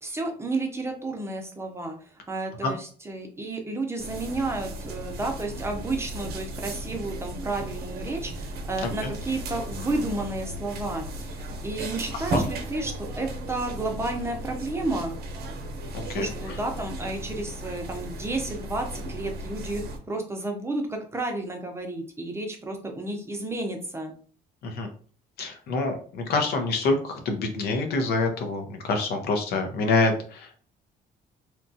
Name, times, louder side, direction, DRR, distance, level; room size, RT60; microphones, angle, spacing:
voice 1, 0.0-15.2 16.1-24.1, right 2 dB, 15° right, 2 dB, 0.6 m, -32 dB
sound 1, 4.0-20.0, right 1 dB, 70° right, 0.7 m, -35 dB
voice 2, 15.9-16.3 24.6-24.9 25.4-30.7, left 3 dB, 70° left, 5 dB, 0.8 m, -26 dB
2.9 x 2.3 x 2.6 m, 0.43 s
cardioid pair, 110°, 17 cm